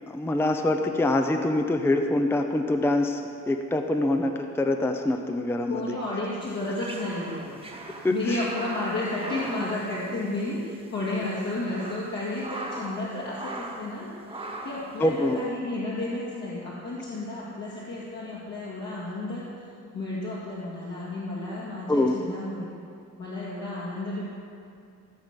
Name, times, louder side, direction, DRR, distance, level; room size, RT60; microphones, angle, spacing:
voice 1, 0.1-5.9 8.0-8.4 15.0-15.4 21.9-22.2, left 2 dB, 10° left, 5 dB, 0.5 m, -25 dB
voice 2, 5.7-7.6 8.1-19.4 19.9-22.7 23.2-24.2, left 2 dB, 60° left, -8 dB, 2.3 m, -32 dB
sound 1, 6.5-10.6 10.8-10.9 11.5-13.0 13.3-13.9 14.3-14.9, right 2 dB, 15° right, 1.3 m, -39 dB
15.5 x 5.2 x 7.4 m, 2.4 s
wide cardioid pair, 150°, 31 cm